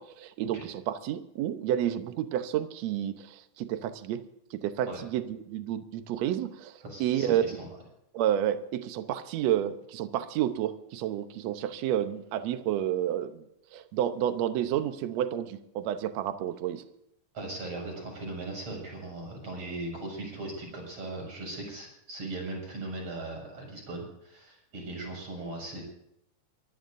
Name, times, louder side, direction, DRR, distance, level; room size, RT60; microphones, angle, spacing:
voice 1, 0.0-4.2 4.5-7.4 8.1-13.4 13.7-16.8, right 11 dB, 65° right, 9 dB, 2.0 m, -30 dB
voice 2, 6.8-7.7 17.3-25.8, right 2 dB, 45° right, 0 dB, 7.5 m, -38 dB
24.0 x 16.0 x 2.7 m, 0.78 s
omnidirectional pair, 3.7 m